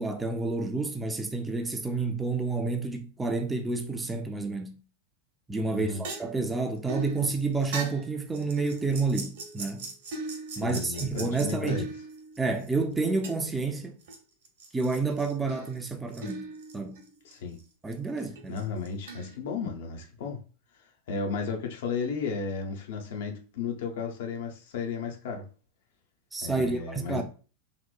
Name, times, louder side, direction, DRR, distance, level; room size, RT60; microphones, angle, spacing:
voice 1, 0.0-4.7 5.5-9.9 10.6-11.9 12.4-14.0 14.7-16.5 16.7-17.0 17.8-18.6 26.3-27.2, right 3 dB, 10° right, 0.3 m, -29 dB
sound 1, 5.6-12.6 13.2-14.2 14.4-17.3 17.6-17.7 18.4-19.4, right 3 dB, 55° right, 0.6 m, -40 dB
voice 2, 5.7-6.0 10.6-11.9 17.2-17.6 18.5-20.4 21.1-25.5 26.4-27.2, left 5 dB, 55° left, 0.5 m, -34 dB
2.9 x 2.0 x 2.3 m
figure-of-eight pair, 90°, 0 cm